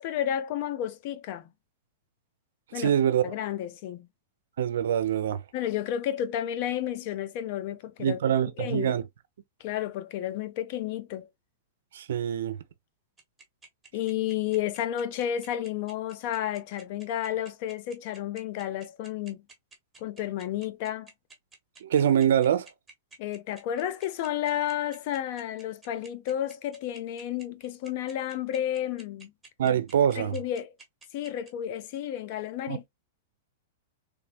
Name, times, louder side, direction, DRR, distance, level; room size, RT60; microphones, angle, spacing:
voice 1, 0.0-1.5 2.7-2.9 3.2-4.1 5.5-8.2 8.6-8.9 9.6-11.3 13.9-19.4 20.0-21.1 23.2-29.3 30.2-30.7 31.1-32.9, left 11 dB, 55° left, 0.4 m, -31 dB
voice 2, 2.7-3.2 4.6-5.4 8.0-9.0 11.9-12.6 21.8-22.7 29.6-30.4 32.7-32.9, right 9 dB, 75° right, 0.4 m, -24 dB
sound 1, 13.2-31.5, right 4 dB, 10° right, 1.1 m, -51 dB
3.4 x 2.1 x 2.2 m
hypercardioid pair, 130°, 0 cm